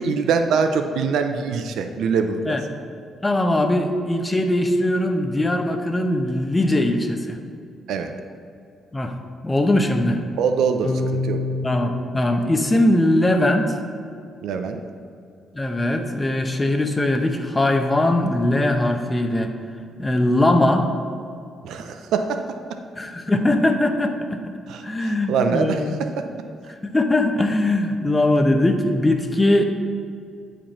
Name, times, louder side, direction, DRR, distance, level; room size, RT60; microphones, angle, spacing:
voice 1, 0.0-2.6 7.9-8.1 10.4-11.4 14.4-14.8 21.6-22.4 24.7-26.2, right 5 dB, 80° right, 6 dB, 0.5 m, -23 dB
voice 2, 3.2-7.4 8.9-9.1 9.4-10.2 11.6-13.7 15.5-19.5 20.0-20.9 23.0-24.5 24.8-26.0 26.8-29.6, left 1 dB, 20° left, 5 dB, 0.8 m, -20 dB
sound 1, 10.8-13.4, left 2 dB, 80° left, 1.5 m, -29 dB
8.9 x 5.1 x 4.3 m, 2.4 s
cardioid pair, 90°, 0 cm